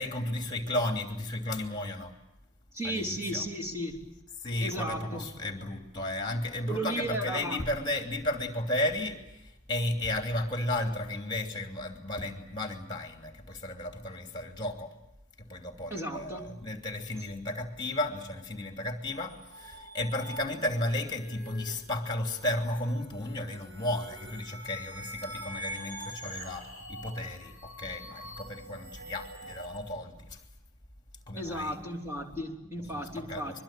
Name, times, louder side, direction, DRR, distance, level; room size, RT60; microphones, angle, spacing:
voice 1, 0.0-2.1 2.8-3.4 4.4-14.9 15.4-30.4 31.3-31.8 32.9-33.6, left 1 dB, 20° left, 3 dB, 2.9 m, -34 dB
voice 2, 2.7-4.0 4.6-5.3 6.7-7.7 15.9-16.5 31.3-33.6, right 1 dB, 10° right, -1 dB, 3.2 m, -35 dB
sound 1, 19.1-29.8, equal, 70° right, 6.7 m, -45 dB
23.5 x 23.0 x 9.0 m, 0.91 s
head